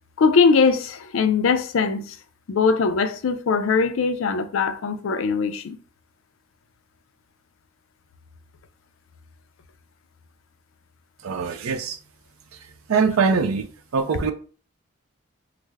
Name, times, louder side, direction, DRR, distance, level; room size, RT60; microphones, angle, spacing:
voice 1, 0.2-2.2 2.5-5.8, left 5 dB, 70° left, 0.4 m, -21 dB
voice 2, 11.2-12.0 12.9-13.7 13.9-14.3, right 5 dB, 80° right, 0.4 m, -22 dB
3.3 x 2.0 x 3.4 m
head